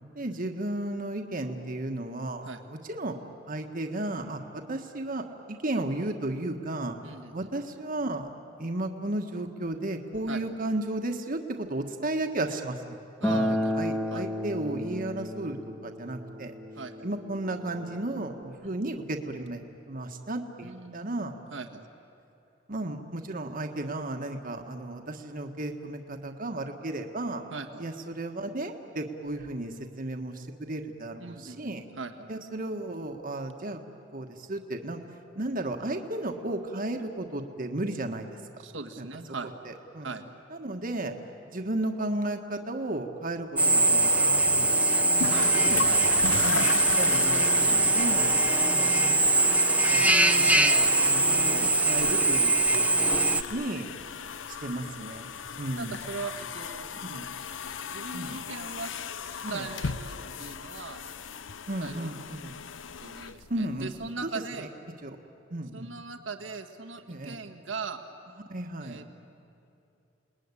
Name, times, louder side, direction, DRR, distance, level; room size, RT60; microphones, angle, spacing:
voice 1, 0.1-3.1 3.5-4.4 4.7-6.9 7.3-8.3 8.6-13.0 13.3-16.5 17.0-19.6 19.9-21.3 22.7-27.4 27.8-31.8 32.3-33.8 34.1-35.0 35.3-38.4 39.0-39.1 39.6-40.1 40.5-41.1 41.5-45.9 46.4-48.3 48.7-53.2 53.5-53.9 54.5-55.3 55.6-56.0 57.0-57.2 58.1-58.4 59.4-59.7 61.7-62.6 63.5-63.9 64.2-64.3 65.0-65.1 65.5-65.9 67.1-67.4 68.5-69.0, right 1 dB, 50° right, 5 dB, 1.5 m, -34 dB
voice 2, 7.0-7.5 10.3-10.4 13.2-13.8 14.1-14.2 16.7-17.1 18.6-18.9 20.6-21.9 27.5-27.8 31.2-32.3 38.6-39.5 40.0-40.2 45.3-45.5 45.8-46.0 48.3-48.8 52.0-52.1 55.5-56.9 57.9-60.1 60.4-61.0 61.8-62.1 63.0-64.7 65.7-68.0 68.8-69.1, right 4 dB, 80° right, 6 dB, 1.7 m, -39 dB
Acoustic guitar, 13.2-18.4, left 1 dB, 10° left, 1.3 m, -32 dB
Drill, 43.6-53.4, right 2 dB, 10° right, 0.9 m, -22 dB
sound 1, 45.2-64.1, left 6 dB, 80° left, 0.7 m, -37 dB
29.0 x 20.0 x 9.8 m, 2.8 s
head